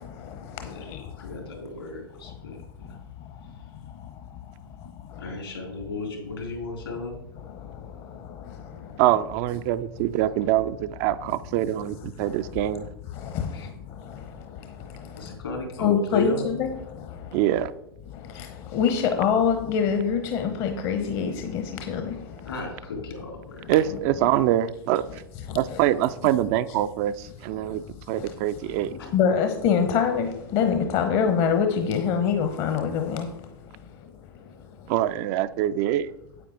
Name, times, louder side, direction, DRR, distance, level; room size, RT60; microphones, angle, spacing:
voice 1, 0.0-1.0 8.5-8.6 13.2-13.7 14.0-14.2 15.8-16.7 17.1-17.2 18.3-22.2 25.5-25.8 29.1-33.3, left 7 dB, 40° left, 1.0 m, -25 dB
voice 2, 1.2-3.0 5.2-7.1 13.5-13.7 15.2-16.4 22.5-23.7, left 3 dB, 75° left, 3.7 m, -34 dB
voice 3, 9.0-12.9 17.3-17.7 23.7-25.2 25.5-28.9 34.9-36.1, right 13 dB, 40° right, 0.4 m, -24 dB
9.4 x 8.6 x 3.9 m
figure-of-eight pair, 95°, 13 cm